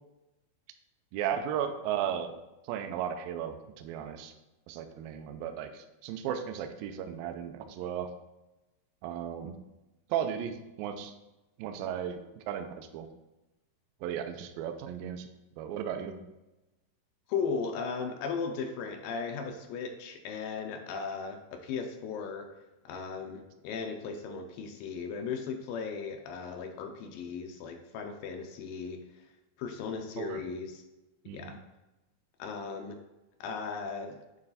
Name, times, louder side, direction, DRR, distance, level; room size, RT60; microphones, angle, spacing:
voice 1, 1.1-2.4 2.7-4.3 4.7-8.1 9.0-9.6 10.1-11.1 11.6-13.1 14.0-15.3 15.6-16.2 30.2-30.4 31.3-31.6, right 9 dB, 90° right, 7 dB, 2.0 m, -35 dB
voice 2, 17.3-22.5 22.9-29.0 29.6-30.8 31.3-31.6 32.4-33.0 33.4-34.2, left 5 dB, 80° left, 4 dB, 2.1 m, -36 dB
9.1 x 3.2 x 4.0 m, 1.0 s
omnidirectional pair, 4.7 m